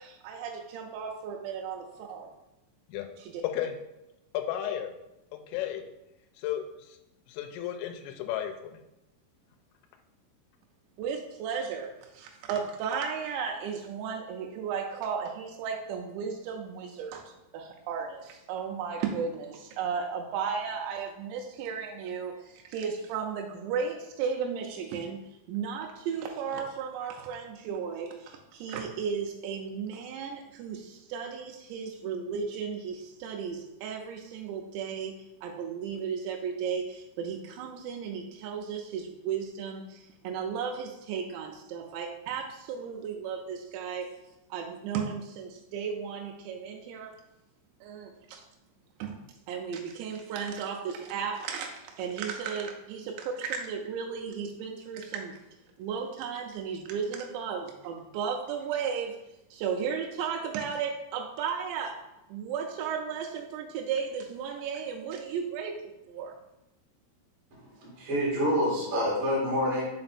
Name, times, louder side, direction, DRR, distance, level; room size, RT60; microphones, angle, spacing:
voice 1, 0.0-1.8 2.1-2.3 3.2-3.4 11.0-25.2 25.5-35.1 35.4-44.1 44.5-47.2 47.8-48.4 49.0-49.2 49.5-55.4 55.8-59.2 59.5-62.0 62.3-66.3, right 6 dB, 85° right, 2 dB, 2.6 m, -34 dB
voice 2, 4.5-4.9 5.3-5.9 6.4-6.6 7.3-8.5, left 11 dB, 85° left, 5 dB, 3.2 m, -33 dB
voice 3, 67.5-69.8, equal, 65° right, -4 dB, 1.4 m, -27 dB
6.5 x 4.3 x 4.1 m, 0.91 s
omnidirectional pair, 5.7 m